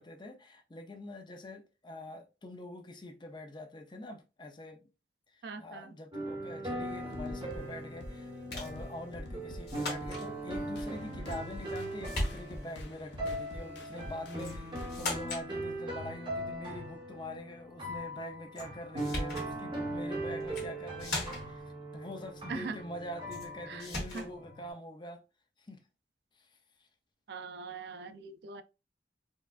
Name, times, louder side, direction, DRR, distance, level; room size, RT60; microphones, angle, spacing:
voice 1, 0.0-4.9 5.3-14.7 15.0-21.6 21.9-25.2 25.6-25.8 26.4-26.5 28.1-28.2, left 1 dB, 25° left, 0.5 m, -45 dB
voice 2, 5.4-6.0 22.5-22.8 23.7-23.9 24.1-24.2 27.3-28.6, right 4 dB, 65° right, 0.4 m, -41 dB
sound 1, 6.1-24.7, right 1 dB, 25° right, 1.1 m, -40 dB
sound 2, 6.8-15.1, equal, 80° left, 0.7 m, -47 dB
sound 3, 8.5-8.8 9.7-10.3 11.3-11.8 12.0-12.7 14.4-14.6 14.9-15.5 18.5-18.7 19.0-19.5 20.4-20.7 21.0-21.6 23.3-23.5 23.8-24.3, left 2 dB, 60° left, 1.7 m, -37 dB
4.4 x 2.4 x 2.4 m
head